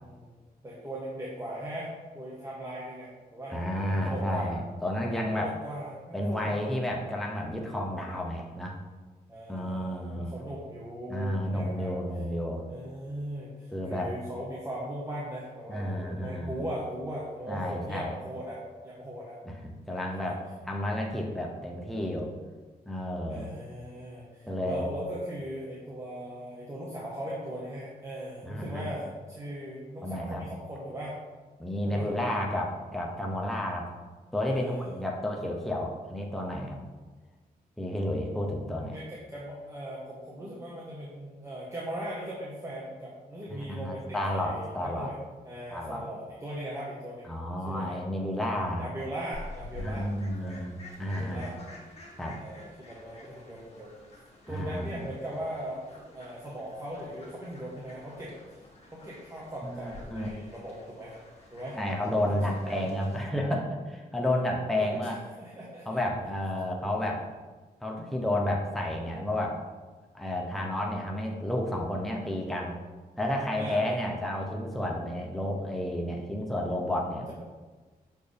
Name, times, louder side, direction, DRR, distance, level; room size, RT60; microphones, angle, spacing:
voice 1, 0.0-0.3 0.6-4.5 5.3-6.6 9.3-11.9 12.7-18.6 18.8-19.4 19.9-20.3 23.3-31.2 31.9-32.1 34.4-35.0 38.9-45.2 45.4-47.3 47.6-48.0 48.8-50.1 50.4-50.6 51.0-51.6 52.4-53.9 54.5-58.3 58.9-61.1 61.5-61.8 62.1-62.9 64.8-66.0 73.5-74.1 76.8-77.0, right 1 dB, 20° right, -6 dB, 1.3 m, -39 dB
voice 2, 3.5-5.5 6.1-8.8 9.5-10.4 11.1-12.6 13.7-14.1 15.7-16.7 17.5-18.1 19.5-20.4 20.7-22.3 22.9-23.5 24.5-24.9 28.5-28.9 30.0-30.4 31.6-33.9 34.3-36.8 37.8-39.0 43.6-45.1 45.7-46.0 47.3-48.9 49.8-51.5 52.2-52.4 54.5-54.9 59.6-60.3 61.7-65.2 65.9-67.3 67.8-69.6 70.1-72.8 73.2-77.3, left 1 dB, ahead, -1 dB, 0.8 m, -31 dB
Fowl, 49.3-63.2, left 1 dB, 40° left, 1.9 m, -49 dB
6.7 x 4.3 x 3.4 m, 1.3 s
cardioid pair, 85°, 16 cm